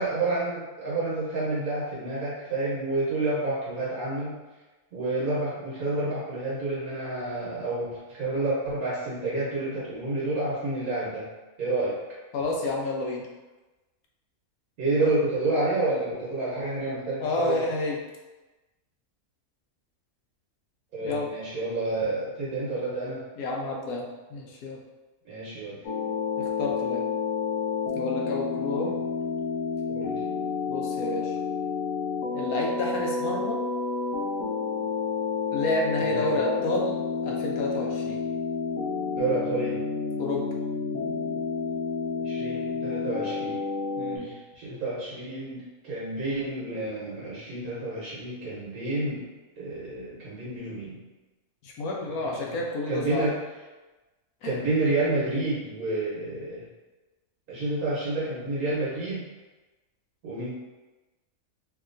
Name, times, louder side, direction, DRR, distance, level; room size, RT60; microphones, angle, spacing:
voice 1, 0.0-4.4 4.9-11.3 11.6-12.0 14.8-17.6 20.9-23.2 25.2-25.8 29.9-30.2 36.0-36.3 39.1-39.8 42.2-43.6 44.1-49.3 49.6-51.0 52.2-53.4 54.4-56.6 57.5-59.2 60.2-60.5, right 2 dB, 90° right, -8 dB, 1.5 m, -29 dB
voice 2, 12.3-13.2 17.2-18.0 21.0-21.3 23.4-24.8 26.4-27.0 27.9-28.9 30.7-31.4 32.3-33.6 35.5-37.0 37.2-38.2 40.2-40.5 44.0-44.3 51.6-53.3 54.4-54.5, left 2 dB, 85° left, -1 dB, 1.1 m, -30 dB
sound 1, 25.8-44.2, left 5 dB, 65° left, 0.9 m, -30 dB
3.0 x 2.8 x 2.5 m, 1.1 s
omnidirectional pair, 1.5 m